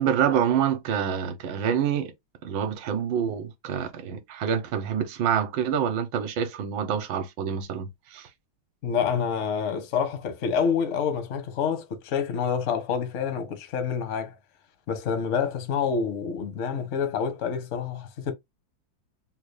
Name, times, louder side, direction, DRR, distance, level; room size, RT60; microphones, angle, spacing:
voice 1, 0.0-2.1 2.4-8.3, right 8 dB, 70° right, 1.3 m, -27 dB
voice 2, 8.8-14.4 14.9-18.3, left 6 dB, 65° left, 0.7 m, -27 dB
3.8 x 2.3 x 3.1 m
omnidirectional pair, 2.2 m